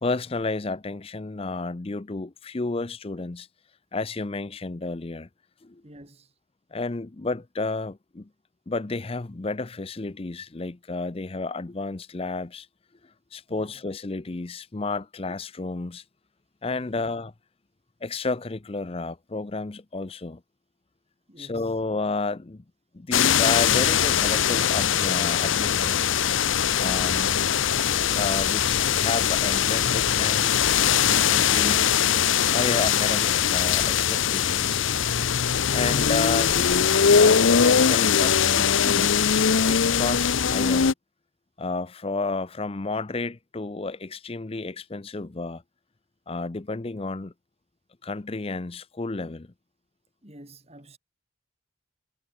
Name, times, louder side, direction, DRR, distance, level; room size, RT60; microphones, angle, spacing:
voice 1, 0.0-3.5 3.9-5.3 5.6-5.8 6.7-8.3 8.7-12.7 13.3-16.0 16.6-17.3 18.0-20.4 21.4-22.6 22.9-26.1 26.8-27.3 28.1-30.6 31.1-31.9 32.5-34.9 35.7-39.2 39.7-40.9 41.6-45.6 46.3-47.3 48.0-49.5, left 3 dB, 30° left, 0.6 m, -31 dB
voice 2, 5.8-6.4 13.5-13.9 16.8-17.1 21.3-21.8 31.4-31.7 50.2-51.0, right 1 dB, 30° right, 6.2 m, -49 dB
sound 1, 23.1-40.9, left 8 dB, 75° left, 0.7 m, -21 dB
head